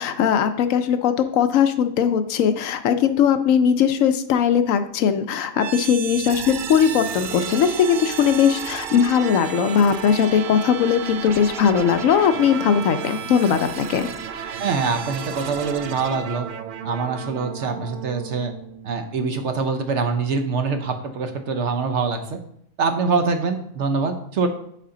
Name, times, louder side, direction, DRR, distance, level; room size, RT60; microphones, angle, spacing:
voice 1, 0.0-14.1, left 8 dB, 75° left, 10 dB, 0.9 m, -19 dB
sound 1, 5.5-19.4, right 8 dB, 90° right, 0.4 m, -33 dB
voice 2, 14.6-16.5 16.8-18.5 18.8-22.4 22.8-24.5, right 4 dB, 60° right, 7 dB, 0.9 m, -24 dB
6.7 x 5.4 x 3.8 m, 0.72 s
omnidirectional pair, 1.5 m